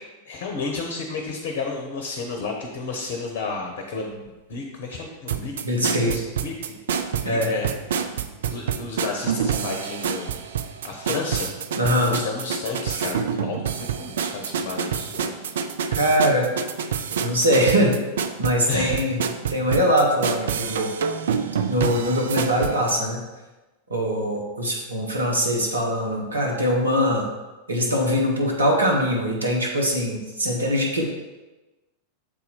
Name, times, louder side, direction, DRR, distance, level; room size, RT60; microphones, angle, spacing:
voice 1, 0.2-6.8 7.2-7.7 7.9-8.0 8.4-10.6 10.8-11.5 12.0-15.5 18.7-19.0 21.6-21.7, left 4 dB, 50° left, 2 dB, 0.9 m, -32 dB
sound 1, 5.3-22.9, right 7 dB, 60° right, 0.4 m, -27 dB
voice 2, 5.6-6.1 7.2-7.5 11.8-12.2 16.0-16.5 17.2-18.0 18.4-19.2 19.5-20.9 21.7-23.2 23.9-27.3 27.7-31.0, equal, 80° right, -1 dB, 1.2 m, -22 dB
6.9 x 4.2 x 4.3 m, 1.1 s
figure-of-eight pair, 90°, 0 cm